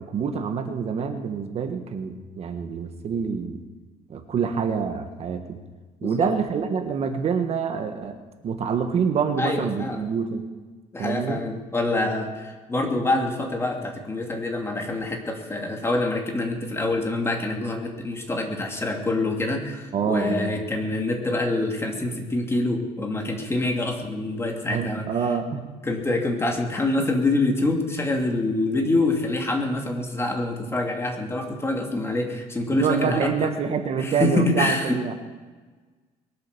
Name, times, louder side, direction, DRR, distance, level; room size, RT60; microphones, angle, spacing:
voice 1, 0.0-3.6 4.1-5.6 6.0-8.2 8.4-10.5 11.0-11.4 19.9-20.5 24.7-25.7 32.7-35.1, right 6 dB, 50° right, 6 dB, 1.5 m, -26 dB
voice 2, 9.4-10.1 10.9-25.1 25.8-33.3 34.0-35.1, left 2 dB, 20° left, 2 dB, 2.8 m, -26 dB
22.0 x 7.9 x 6.9 m, 1.3 s
cardioid pair, 115°, 14 cm